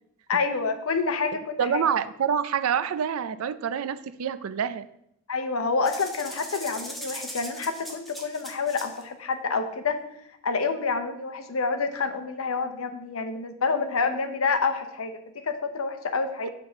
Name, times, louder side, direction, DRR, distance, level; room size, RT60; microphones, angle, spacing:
voice 1, 0.3-1.8 5.3-10.0 10.4-16.5, left 4 dB, 85° left, 8 dB, 0.8 m, -28 dB
voice 2, 1.6-4.9, right 7 dB, 90° right, 14 dB, 0.4 m, -27 dB
sound 1, 5.8-9.0, equal, ahead, 0.9 m, -39 dB
6.0 x 4.2 x 6.2 m, 0.77 s
head